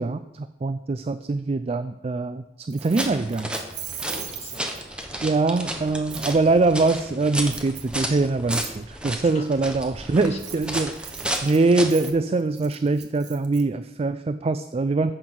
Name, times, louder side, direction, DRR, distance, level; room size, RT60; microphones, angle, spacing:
voice 1, 0.0-3.5 5.2-10.9 11.4-15.1, right 3 dB, 35° right, 11 dB, 0.4 m, -23 dB
Keys jangling, 2.7-5.0 6.1-6.3 7.4-8.0 8.5-8.7 10.2-13.6, right 10 dB, 65° right, 1.2 m, -39 dB
sound 1, 2.8-12.1, right 1 dB, 5° right, 1.1 m, -33 dB
voice 2, 4.0-4.7 5.2-5.4 9.2-9.4 10.2-11.5, left 3 dB, 35° left, 2 dB, 1.7 m, -44 dB
9.0 x 8.0 x 6.1 m, 0.91 s
head